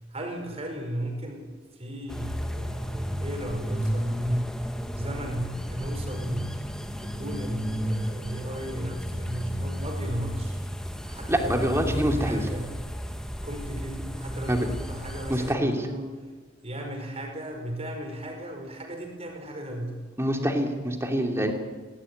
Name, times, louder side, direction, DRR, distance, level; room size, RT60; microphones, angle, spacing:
voice 1, 0.1-4.6 4.9-6.6 7.0-10.6 11.1-12.8 13.4-16.2 16.6-20.0, equal, 35° right, 3 dB, 5.3 m, -35 dB
sound 1, 2.1-15.5, equal, 5° left, 1.2 m, -32 dB
voice 2, 11.3-12.4 14.5-14.6 15.3-15.7 20.2-21.5, equal, 15° right, 3 dB, 2.6 m, -25 dB
18.5 x 18.0 x 9.8 m, 1.4 s
head